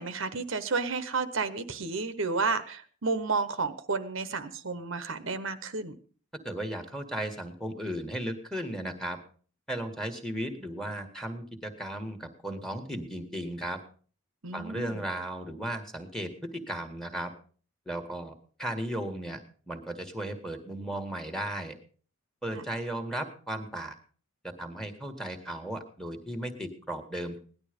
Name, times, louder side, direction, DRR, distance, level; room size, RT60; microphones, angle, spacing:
voice 1, 0.0-6.0 14.4-15.0 22.5-22.6, right 4 dB, 60° right, 11 dB, 1.0 m, -31 dB
voice 2, 6.4-9.2 9.7-13.8 14.5-17.3 17.8-18.3 18.6-19.4 19.7-21.7 22.4-23.9 24.4-27.4, right 1 dB, ahead, 7 dB, 1.6 m, -35 dB
17.5 x 11.5 x 5.2 m, 0.42 s
head